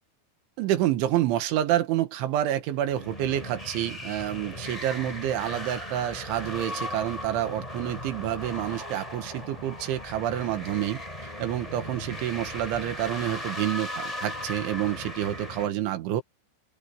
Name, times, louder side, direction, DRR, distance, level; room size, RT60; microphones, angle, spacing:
voice 1, 0.6-16.2, right 12 dB, 75° right, 4.0 m, -28 dB
sound 1, 2.8-15.7, left 1 dB, 5° left, 7.4 m, -37 dB
open air
omnidirectional pair, 5.5 m